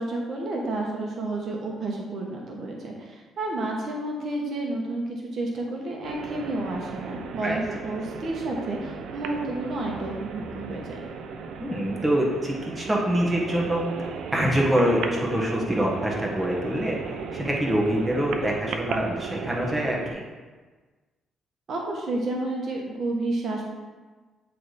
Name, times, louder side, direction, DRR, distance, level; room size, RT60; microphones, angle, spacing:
voice 1, 0.0-11.0 21.7-23.7, right 2 dB, 60° right, -1 dB, 1.0 m, -30 dB
sound 1, 6.0-20.1, right 5 dB, 85° right, 0.5 m, -36 dB
voice 2, 11.6-13.8 14.3-20.2, equal, 10° right, -3 dB, 1.4 m, -25 dB
8.5 x 3.3 x 4.1 m, 1.3 s
cardioid pair, 90°, 0 cm